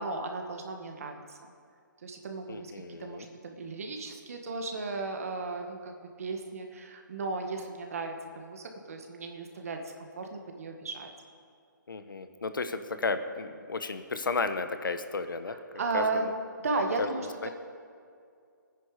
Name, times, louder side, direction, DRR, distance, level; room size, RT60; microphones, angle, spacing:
voice 1, 0.0-1.4 2.0-2.7 3.0-9.8 10.1-11.1 15.4-16.3 16.6-17.5, right 3 dB, 45° right, 4 dB, 1.7 m, -35 dB
voice 2, 2.5-3.3 11.9-15.6 15.9-16.3 17.0-17.1 17.4-17.5, left 4 dB, 85° left, 9 dB, 1.2 m, -33 dB
22.5 x 10.0 x 5.0 m, 2.3 s
hypercardioid pair, 170°, 11 cm